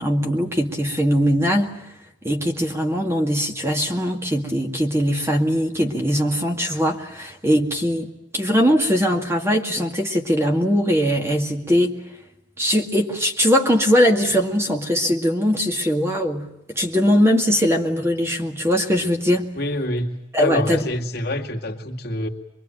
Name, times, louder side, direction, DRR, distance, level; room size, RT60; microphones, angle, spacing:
voice 1, 0.0-1.7 2.2-12.0 12.6-16.5 16.7-19.5 20.3-20.8, equal, 15° right, 2 dB, 2.2 m, -20 dB
voice 2, 19.5-22.3, left 1 dB, 55° left, 2 dB, 2.4 m, -26 dB
25.0 x 23.0 x 9.1 m, 0.84 s
head